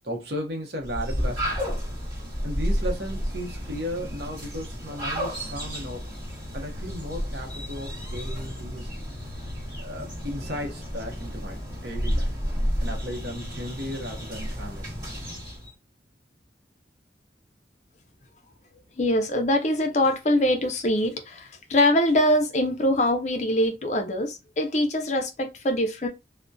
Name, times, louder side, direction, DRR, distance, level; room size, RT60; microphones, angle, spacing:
voice 1, 0.0-1.8 2.4-6.1 6.5-8.9 9.8-14.8, equal, 65° right, 0.7 m, -35 dB
sound 1, 0.8-15.7, equal, 25° right, 1.3 m, -31 dB
voice 2, 19.0-26.1, left 1 dB, 40° left, 0.5 m, -23 dB
2.6 x 2.1 x 2.2 m
head